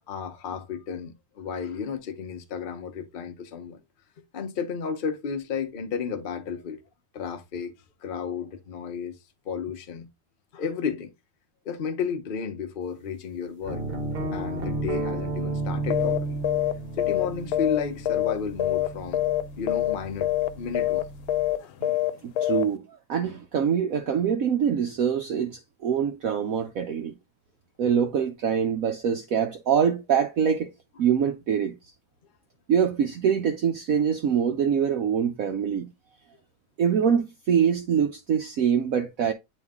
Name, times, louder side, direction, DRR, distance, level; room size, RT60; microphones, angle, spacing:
voice 1, 0.0-3.8 4.3-6.8 7.1-7.7 8.0-9.2 9.5-10.1 10.5-11.1 11.6-13.8 14.3-16.4 17.0-19.2 19.6-21.1 21.6-21.8, left 6 dB, 55° left, 0.6 m, -33 dB
sound 1, 13.6-21.5, right 2 dB, 40° right, 0.9 m, -33 dB
sound 2, 15.9-16.2 16.4-16.7 17.0-18.3 18.6-18.9 19.1-19.4 19.7-19.9 20.2-20.5 20.7-21.0 21.3-21.6 21.8-22.1 22.4-22.6, left 14 dB, 90° left, 1.5 m, -24 dB
voice 2, 22.2-27.2 27.8-30.7 31.0-31.8 32.7-35.9 36.8-39.3, right 7 dB, 75° right, 0.8 m, -24 dB
9.1 x 3.1 x 3.5 m
omnidirectional pair, 2.2 m